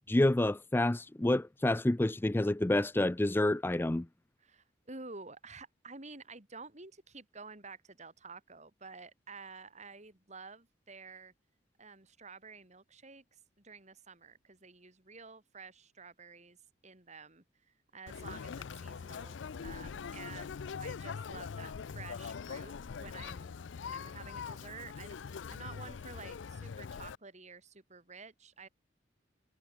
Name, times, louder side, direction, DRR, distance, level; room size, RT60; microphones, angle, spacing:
voice 1, 0.1-4.1, left 1 dB, 10° left, 0.4 m, -28 dB
voice 2, 4.4-11.3 11.8-16.6 16.8-17.4 17.9-28.7, right 4 dB, 40° right, 3.7 m, -51 dB
Conversation, 18.1-27.2, left 6 dB, 75° left, 0.5 m, -42 dB
head